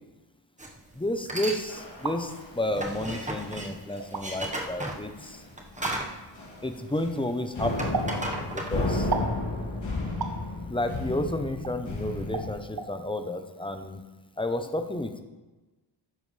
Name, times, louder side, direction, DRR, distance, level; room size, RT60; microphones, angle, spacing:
sound 1, 0.6-0.8 1.2-1.6 2.0-7.3 7.6-9.1, right 1 dB, 15° right, 1.3 m, -35 dB
voice 1, 0.9-5.4 6.6-8.0 8.5-9.1 10.7-14.0 14.4-15.2, left 1 dB, 10° left, 7 dB, 0.8 m, -31 dB
sound 2, 1.7-2.6 2.9-3.2 3.4-3.7 4.0-4.2 4.6-4.7 5.2-5.5 5.8-5.9 6.3-7.2 7.5-12.5, left 2 dB, 85° left, 3.0 m, -33 dB
sound 3, 1.8-2.2 3.1-3.2 4.0-4.2 5.8-6.0 7.9-8.1 9.1-9.4 10.2-10.4 11.6-11.8 12.3-12.5 12.8-12.9, right 4 dB, 50° right, 1.2 m, -31 dB
12.5 x 9.9 x 3.3 m, 1.2 s
wide cardioid pair, 120°, 46 cm